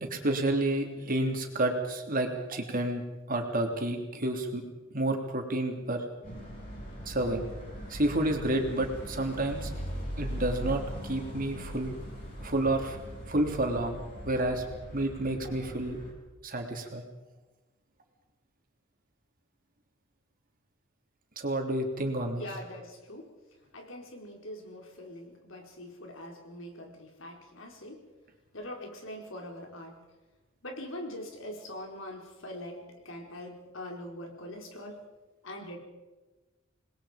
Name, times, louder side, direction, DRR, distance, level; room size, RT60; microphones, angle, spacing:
voice 1, 0.1-3.0 3.3-4.6 4.9-6.0 7.0-7.4 7.9-9.7 10.2-12.0 12.4-13.0 13.3-14.6 14.9-16.0 16.4-17.0 21.4-22.4, right 1 dB, 45° right, 3 dB, 3.3 m, -30 dB
sound 1, 6.2-16.1, equal, 45° left, 7.8 m, -40 dB
voice 2, 22.4-23.3 23.7-28.0 28.5-29.9 30.6-35.0 35.4-35.8, left 1 dB, 80° left, 2 dB, 4.6 m, -43 dB
27.5 x 21.0 x 5.3 m, 1.2 s
head